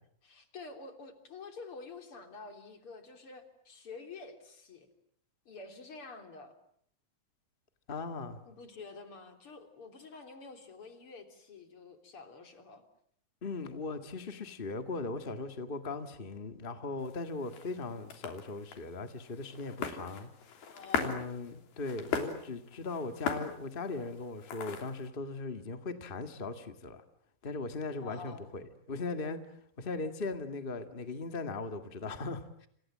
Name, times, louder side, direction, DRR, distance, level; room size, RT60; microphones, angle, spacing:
voice 1, 0.2-4.9 5.5-6.5 8.4-12.8 20.7-21.2 27.8-28.4, left 4 dB, 35° left, 7 dB, 3.9 m, -48 dB
voice 2, 7.9-8.4 13.4-20.3 21.0-27.0 27.4-29.4 29.8-32.4, left 3 dB, 55° left, 8 dB, 0.5 m, -38 dB
sound 1, 17.0-25.1, left 6 dB, 85° left, 5.0 m, -40 dB
29.5 x 27.5 x 7.4 m, 0.65 s
omnidirectional pair, 4.3 m